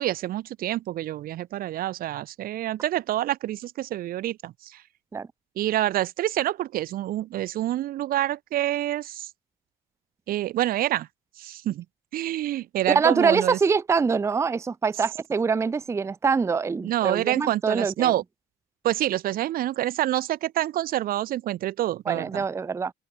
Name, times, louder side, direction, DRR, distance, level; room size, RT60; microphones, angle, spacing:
voice 1, 0.0-4.8 5.6-9.3 10.3-11.1 11.4-11.8 12.1-13.6 16.8-18.2 18.8-22.4, right 14 dB, 60° right, 0.6 m, -27 dB
voice 2, 12.9-18.1 22.1-22.9, right 5 dB, 15° right, 0.5 m, -24 dB
cardioid pair, 110°, 17 cm